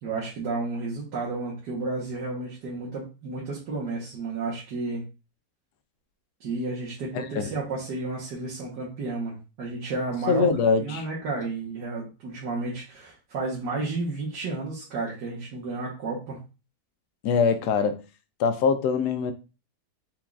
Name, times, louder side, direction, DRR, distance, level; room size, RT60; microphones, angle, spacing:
voice 1, 0.0-5.0 6.4-10.4 10.8-16.4, right 3 dB, 85° right, 1.7 m, -32 dB
voice 2, 7.1-7.5 10.3-11.0 17.2-18.0 18.4-19.3, left 5 dB, 75° left, 1.2 m, -23 dB
4.5 x 3.9 x 2.4 m
omnidirectional pair, 1.8 m